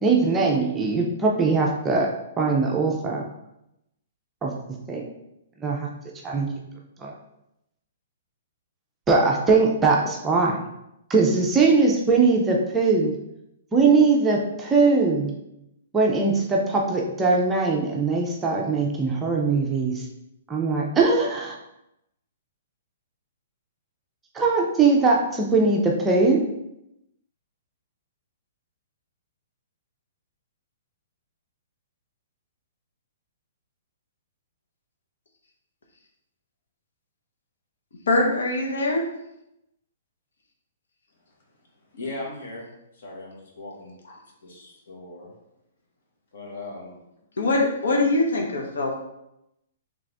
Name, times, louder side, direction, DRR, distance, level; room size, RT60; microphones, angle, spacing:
voice 1, 0.0-3.3 4.4-4.5 4.9-5.0 5.6-5.9 6.2-6.5 7.0-7.1 9.1-10.6 11.1-13.2 13.7-15.3 15.9-20.1 20.5-21.6 24.3-26.4, right 4 dB, 10° right, -1 dB, 0.4 m, -21 dB
voice 2, 38.1-39.0 47.4-49.0, left 2 dB, 90° left, 1 dB, 0.9 m, -22 dB
voice 3, 41.9-45.3 46.3-47.0, left 2 dB, 60° left, -2 dB, 1.5 m, -39 dB
3.8 x 3.3 x 3.4 m, 0.85 s
hypercardioid pair, 170°, 0 cm